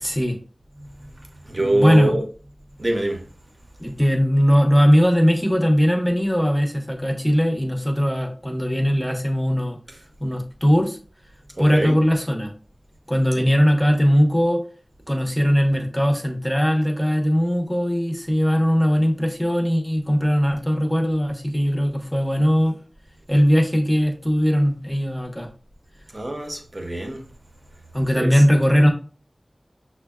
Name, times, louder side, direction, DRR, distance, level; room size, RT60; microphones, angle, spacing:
voice 1, 0.0-0.4 1.6-2.1 3.8-9.8 10.2-11.0 11.6-12.5 13.1-14.6 15.1-22.8 23.3-25.5 27.9-28.9, equal, 10° left, 0.8 m, -19 dB
voice 2, 1.5-2.2 2.8-3.2 11.6-12.0 13.4-13.5 26.1-27.2 28.1-28.3, right 1 dB, 35° right, 0.8 m, -24 dB
6.1 x 2.2 x 2.3 m
wide cardioid pair, 50°, 0 cm